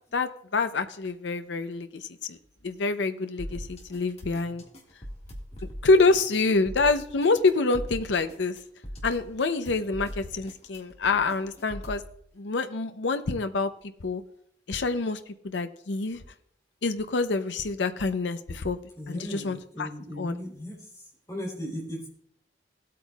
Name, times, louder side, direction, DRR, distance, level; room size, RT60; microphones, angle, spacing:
voice 1, 0.1-2.4 2.6-4.6 5.8-8.6 9.0-12.0 12.4-13.7 14.0-14.2 14.7-16.2 16.8-18.8 19.1-19.9 20.2-20.3, left 3 dB, 80° left, 9 dB, 0.6 m, -26 dB
sound 1, 3.4-12.1, equal, 35° left, 1.7 m, -41 dB
voice 2, 19.0-22.1, equal, 20° left, -2 dB, 3.2 m, -37 dB
17.5 x 8.4 x 2.3 m, 0.70 s
head